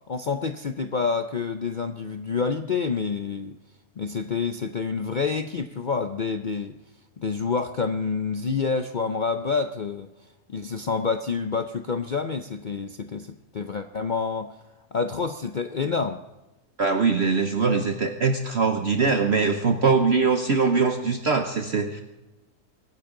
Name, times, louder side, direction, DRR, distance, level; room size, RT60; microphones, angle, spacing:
voice 1, 0.1-3.5 4.0-6.7 7.2-10.1 10.5-14.6 14.9-16.2, left 5 dB, 65° left, 8 dB, 0.4 m, -28 dB
voice 2, 16.8-22.0, right 4 dB, 50° right, 5 dB, 1.1 m, -22 dB
24.0 x 9.9 x 3.8 m, 1.0 s
omnidirectional pair, 1.6 m